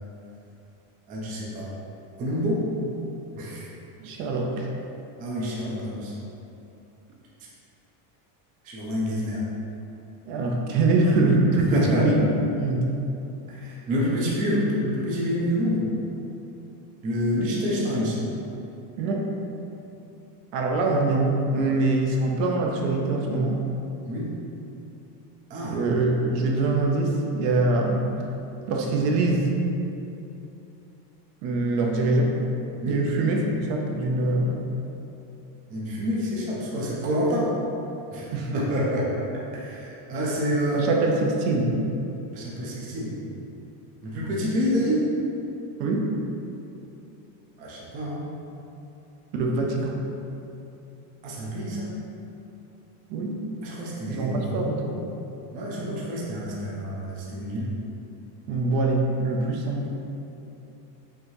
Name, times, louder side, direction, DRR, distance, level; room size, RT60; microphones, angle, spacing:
voice 1, 1.1-1.7 2.2-2.7 3.3-3.7 5.2-6.1 8.6-9.4 11.7-12.1 13.5-15.8 17.0-18.2 24.0-24.3 25.5-25.8 32.8-33.1 35.7-37.5 38.1-39.1 39.5-40.9 42.3-43.1 44.0-45.1 47.6-48.3 51.2-51.9 53.6-54.5 55.5-57.7, equal, 20° right, -6 dB, 0.3 m, -27 dB
voice 2, 4.0-4.7 10.3-12.3 12.5-12.9 19.0-19.3 20.5-23.6 25.7-28.1 28.7-29.5 31.4-32.4 32.9-34.7 38.3-38.5 40.1-40.2 40.7-41.8 45.8-46.1 49.3-50.0 53.1-53.4 54.1-55.1 58.5-59.9, right 2 dB, 65° right, 0 dB, 0.7 m, -24 dB
5.5 x 2.7 x 3.0 m, 2.9 s
cardioid pair, 165°, 46 cm